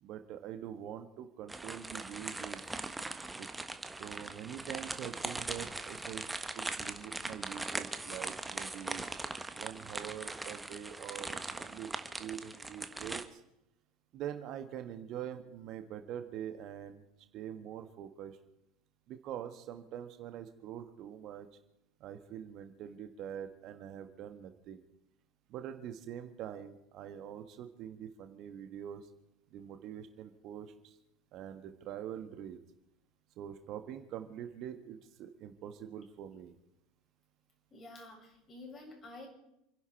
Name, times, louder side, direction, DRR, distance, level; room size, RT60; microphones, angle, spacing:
voice 1, 0.0-2.8 3.4-3.5 4.0-6.3 6.5-9.0 9.5-13.4 14.1-17.0 17.3-18.4 19.1-21.5 22.0-24.8 25.5-29.1 29.5-31.0 31.3-32.6 33.4-36.6, right 10 dB, 50° right, 8 dB, 1.4 m, -44 dB
sound 1, 1.5-13.2, right 2 dB, 10° right, 1.4 m, -40 dB
voice 2, 37.7-39.3, left 2 dB, 30° left, -1 dB, 7.0 m, -49 dB
28.5 x 11.0 x 4.6 m, 0.83 s
figure-of-eight pair, 75°, 0 cm